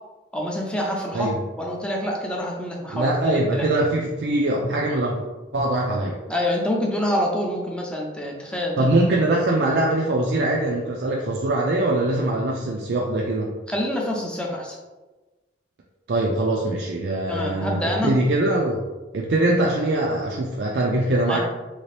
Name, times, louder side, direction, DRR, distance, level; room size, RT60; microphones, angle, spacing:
voice 1, 0.3-3.7 6.3-8.9 13.7-14.8 17.3-18.2 21.3-21.4, left 1 dB, 5° left, -1 dB, 0.4 m, -26 dB
voice 2, 2.9-5.2 5.5-6.2 8.8-13.5 16.1-18.8 19.1-21.4, right 1 dB, 65° right, -2 dB, 0.4 m, -22 dB
3.3 x 2.8 x 3.2 m, 1.2 s
head